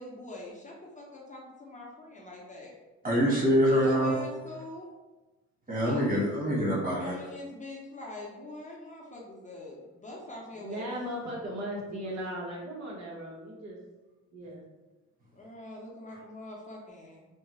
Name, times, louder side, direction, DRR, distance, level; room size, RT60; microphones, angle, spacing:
voice 1, 0.0-2.7 3.7-4.9 5.8-6.1 7.0-11.0 15.3-17.3, left 2 dB, 25° left, -3 dB, 0.7 m, -44 dB
voice 2, 3.0-4.1 5.7-7.1, equal, 30° right, -6 dB, 1.5 m, -25 dB
voice 3, 10.5-13.8 14.3-14.6, equal, 65° right, -4 dB, 1.1 m, -37 dB
3.6 x 2.1 x 3.1 m, 1.2 s
cardioid pair, 90°, 30 cm